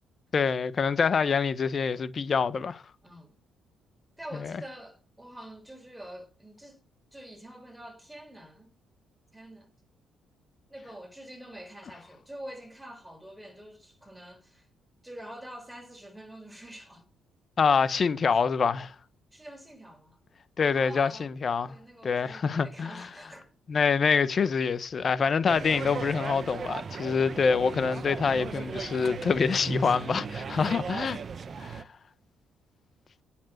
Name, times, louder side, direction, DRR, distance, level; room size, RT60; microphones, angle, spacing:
voice 1, 0.3-2.8 4.3-4.5 17.6-18.9 20.6-21.8 22.0-23.0 23.7-31.2 31.6-31.9, left 5 dB, 45° left, 1.1 m, -26 dB
voice 2, 3.0-3.4 4.2-6.9 7.1-8.7 9.3-9.7 10.7-14.7 15.0-17.1 17.7-18.0 18.3-18.4 19.3-20.2 20.7-21.3 21.7-23.6 24.9-25.1 29.8-30.3, right 1 dB, 5° right, 5.1 m, -46 dB
sound 1, 25.5-31.8, right 5 dB, 45° right, 1.0 m, -36 dB
9.2 x 7.3 x 7.8 m
supercardioid pair, 70°, 0 cm